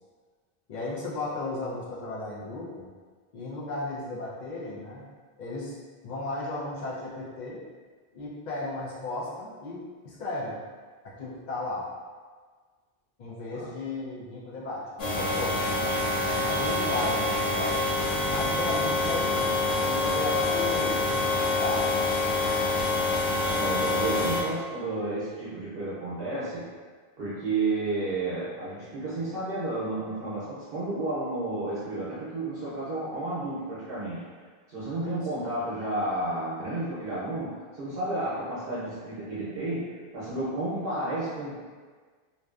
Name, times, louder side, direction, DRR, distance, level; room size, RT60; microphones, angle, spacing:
voice 1, 0.7-2.9 3.3-5.1 5.4-5.8 6.0-7.6 8.1-10.6 11.0-11.9 13.2-17.8 18.3-22.5 35.4-35.5, left 2 dB, 55° left, -5 dB, 0.6 m, -35 dB
sound 1, 15.0-24.4, left 2 dB, 75° left, 0.9 m, -26 dB
voice 2, 23.5-26.7 27.2-41.6, right 2 dB, 70° right, -9 dB, 0.8 m, -32 dB
2.6 x 2.1 x 2.3 m, 1.5 s
omnidirectional pair, 1.0 m